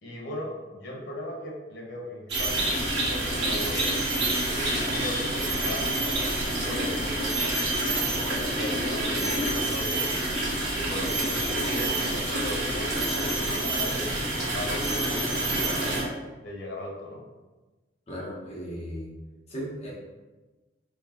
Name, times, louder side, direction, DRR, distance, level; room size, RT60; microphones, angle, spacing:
voice 1, 0.0-2.7 3.0-3.9 4.5-10.1 10.7-15.9 16.4-17.2, left 1 dB, 85° left, -2 dB, 1.0 m, -38 dB
sound 1, 2.3-16.0, right 1 dB, 65° right, 1.4 m, -27 dB
sound 2, 3.7-8.6, left 2 dB, 50° left, 0.8 m, -41 dB
voice 2, 18.1-19.1 19.5-19.9, equal, 35° left, -5 dB, 1.1 m, -36 dB
4.5 x 3.0 x 3.0 m, 1.2 s
head